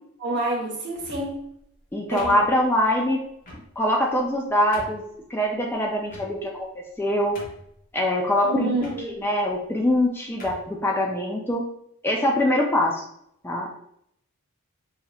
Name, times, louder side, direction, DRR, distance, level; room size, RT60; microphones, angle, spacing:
voice 1, 0.2-1.4 2.1-2.4 8.4-9.2, right 2 dB, 50° right, -2 dB, 1.1 m, -28 dB
sound 1, 0.9-1.5 2.2-2.8 3.4-3.7 4.2-4.3 4.7-5.1 6.1-6.6 7.0-7.1 7.4-7.8 8.8-9.0 9.8-10.0 10.4-10.7, left 1 dB, 40° left, 0.9 m, -42 dB
voice 2, 1.9-3.2 3.8-5.0 5.3-7.4 7.9-11.6 12.0-13.0 13.4-13.7, left 1 dB, 10° left, 0 dB, 0.4 m, -23 dB
4.8 x 2.7 x 2.4 m, 0.72 s
head